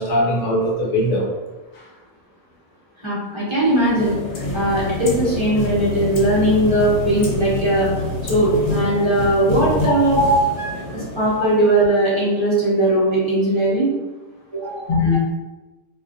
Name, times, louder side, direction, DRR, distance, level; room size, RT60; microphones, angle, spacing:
voice 1, 0.0-1.3 1.7-1.8 10.1-10.3 14.9-15.2, left 1 dB, 55° left, -3 dB, 0.8 m, -19 dB
voice 2, 3.0-4.1 4.5-7.9 8.3-10.2 10.6-13.9 14.5-14.9, right 1 dB, 30° right, -8 dB, 0.6 m, -19 dB
sound 1, 3.6-11.9, left 2 dB, 80° left, 0.9 m, -27 dB
2.2 x 2.1 x 2.5 m, 1.1 s
omnidirectional pair, 1.2 m